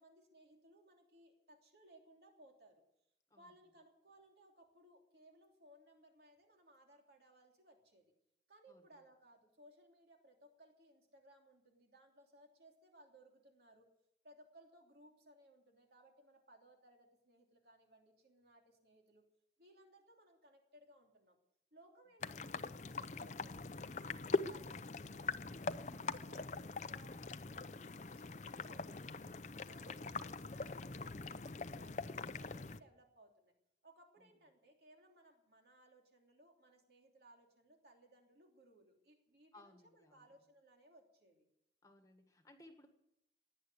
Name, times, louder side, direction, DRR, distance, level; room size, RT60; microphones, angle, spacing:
voice 1, 0.0-2.8 3.4-8.1 8.5-13.9 14.2-19.3 19.6-21.4 21.7-27.6 28.0-29.3 29.7-33.5 33.8-41.4, right 1 dB, 60° right, 2 dB, 3.1 m, -64 dB
sound 1, 22.2-32.8, left 3 dB, 40° left, 0.6 m, -43 dB
voice 2, 39.5-40.2 41.8-42.9, left 1 dB, 20° left, 5 dB, 1.6 m, -62 dB
17.5 x 10.0 x 8.1 m, 0.82 s
head